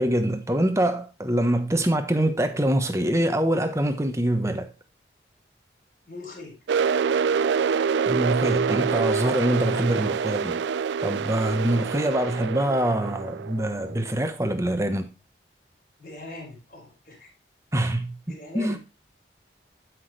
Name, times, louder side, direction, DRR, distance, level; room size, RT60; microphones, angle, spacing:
voice 1, 0.0-4.7 8.1-10.6 11.0-15.1 17.7-18.2 18.5-18.8, right 1 dB, 15° right, 1.1 m, -24 dB
voice 2, 6.1-6.5 12.0-12.3 16.0-17.3 18.3-18.8, left 2 dB, 45° left, 5.1 m, -41 dB
sound 1, 6.7-14.3, right 6 dB, 80° right, 0.3 m, -26 dB
12.5 x 6.0 x 3.3 m
head